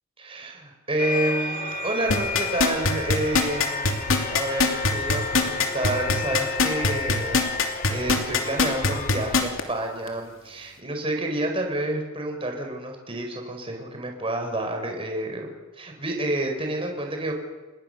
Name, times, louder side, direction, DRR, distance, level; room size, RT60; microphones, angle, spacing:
voice 1, 0.2-7.6 7.9-15.5 15.7-17.3, right 1 dB, 25° right, 3 dB, 4.6 m, -29 dB
sound 1, 1.0-9.4, left 3 dB, 45° left, 3.2 m, -31 dB
sound 2, 2.1-9.6 10.1-10.2, left 4 dB, 70° left, 3.0 m, -21 dB
29.0 x 20.5 x 6.7 m, 1.2 s
head